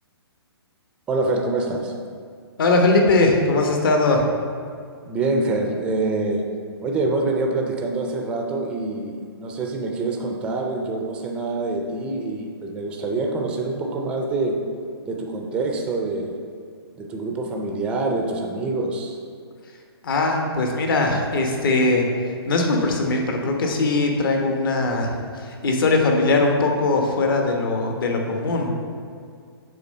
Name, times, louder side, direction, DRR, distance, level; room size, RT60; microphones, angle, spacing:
voice 1, 1.1-1.9 5.1-6.4 6.8-14.6 15.1-16.4 17.0-19.2, right 3 dB, 10° right, 2 dB, 0.4 m, -25 dB
voice 2, 2.6-4.2 20.0-22.1 22.5-28.7, left 2 dB, 55° left, 2 dB, 1.1 m, -20 dB
7.0 x 3.8 x 5.3 m, 2.1 s
hypercardioid pair, 155°, 14 cm